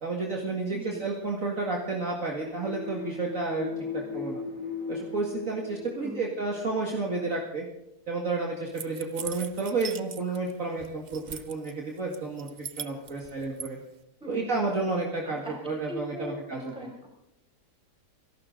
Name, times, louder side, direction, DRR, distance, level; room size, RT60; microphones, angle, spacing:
voice 1, 0.0-4.4 4.9-7.6 8.1-13.8 14.3-16.7, right 3 dB, 50° right, -1 dB, 2.4 m, -31 dB
voice 2, 0.7-1.0 6.0-6.3 14.2-14.5 15.2-17.1, equal, 5° right, -2 dB, 4.9 m, -40 dB
sound 1, 2.5-7.0, left 5 dB, 90° left, 3.2 m, -38 dB
sound 2, 8.8-10.5 10.8-11.7 12.1-13.7, right 7 dB, 85° right, 0.4 m, -40 dB
29.0 x 12.0 x 3.9 m, 0.82 s
omnidirectional pair, 1.8 m